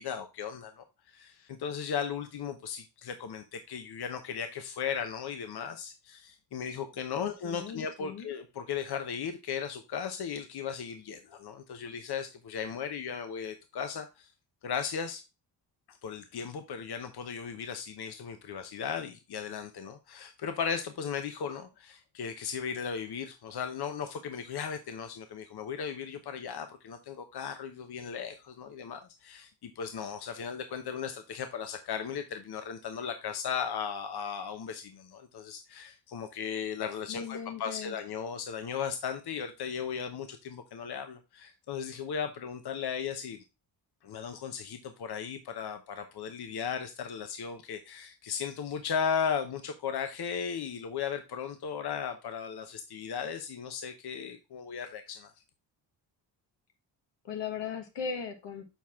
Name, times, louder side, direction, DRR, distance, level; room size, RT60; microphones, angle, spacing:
voice 1, 0.0-14.3 14.6-15.2 15.9-43.4 44.0-55.3, left 7 dB, 65° left, 0.9 m, -36 dB
voice 2, 7.2-8.3 37.1-37.9 57.2-58.6, left 6 dB, 90° left, 1.4 m, -38 dB
7.1 x 4.4 x 3.5 m
cardioid pair, 80°, 42 cm